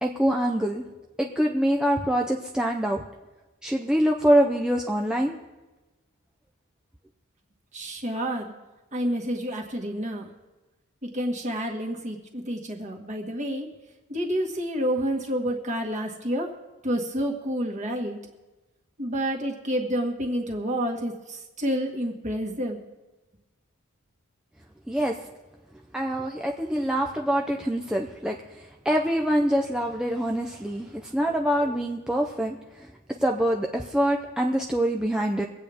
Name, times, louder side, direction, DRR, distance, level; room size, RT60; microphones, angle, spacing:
voice 1, 0.0-0.8 1.2-3.0 3.6-5.4 24.9-25.1 25.9-32.9 33.2-35.4, equal, 5° right, 1 dB, 0.6 m, -25 dB
voice 2, 7.7-8.5 8.9-10.3 11.0-13.7 14.1-16.5 16.8-18.2 19.0-22.8, equal, 35° right, 1 dB, 1.7 m, -29 dB
24.5 x 8.4 x 3.5 m, 1.1 s
head